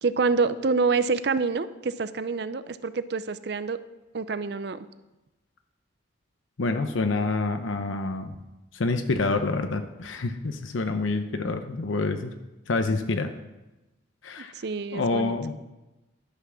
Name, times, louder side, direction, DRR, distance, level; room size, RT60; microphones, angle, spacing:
voice 1, 0.0-3.8 4.1-4.9 14.4-15.3, right 4 dB, 55° right, 14 dB, 0.5 m, -27 dB
voice 2, 6.6-8.3 8.7-12.3 12.7-13.3 14.2-14.5 14.9-15.6, left 3 dB, 85° left, 7 dB, 0.7 m, -27 dB
11.5 x 5.9 x 6.2 m, 1.0 s
head